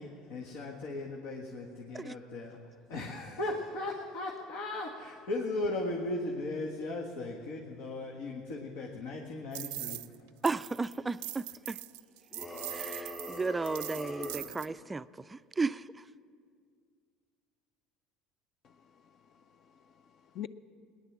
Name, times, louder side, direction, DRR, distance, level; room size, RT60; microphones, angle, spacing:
voice 1, 0.0-2.6 2.9-10.0, left 2 dB, 85° left, 1.6 m, -37 dB
sound 1, 9.5-10.1 10.4-14.7, right 18 dB, 90° right, 0.5 m, -42 dB
voice 2, 10.4-11.8 12.7-15.0 15.6-15.8, right 3 dB, 15° right, 0.3 m, -34 dB
sound 2, 12.3-14.5, left 2 dB, 20° left, 3.4 m, -42 dB
voice 3, 18.6-20.5, left 11 dB, 45° left, 0.5 m, -47 dB
19.0 x 10.5 x 7.3 m
cardioid pair, 130°, 0 cm